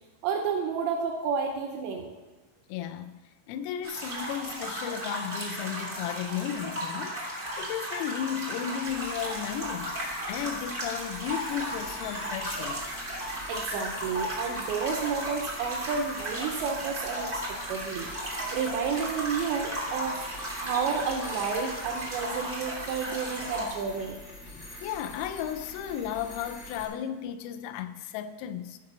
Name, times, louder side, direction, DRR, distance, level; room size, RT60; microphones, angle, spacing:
voice 1, 0.2-2.1 13.5-17.3 17.7-18.1 18.5-24.2, right 6 dB, 80° right, 2.5 m, -31 dB
voice 2, 2.7-3.2 3.5-13.0 18.4-18.5 20.5-20.7 24.5-28.8, left 9 dB, 85° left, 3.2 m, -35 dB
sound 1, 3.8-23.7, right 1 dB, 30° right, 0.8 m, -35 dB
sound 2, 8.8-26.8, left 1 dB, 40° left, 1.0 m, -46 dB
13.0 x 4.9 x 6.7 m
omnidirectional pair, 6.0 m